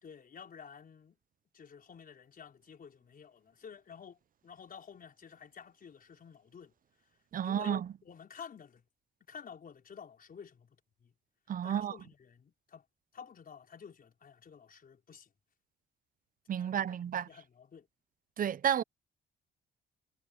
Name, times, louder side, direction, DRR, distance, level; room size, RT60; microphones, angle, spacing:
voice 1, 0.0-1.2 1.5-6.7 7.4-8.8 9.3-11.1 11.6-12.8 13.1-15.3 16.6-17.9, left 7 dB, 45° left, 4.9 m, -51 dB
voice 2, 7.3-7.9 11.5-11.9 16.5-17.3 18.4-18.8, right 9 dB, 45° right, 0.6 m, -31 dB
cardioid pair, 90°, 20 cm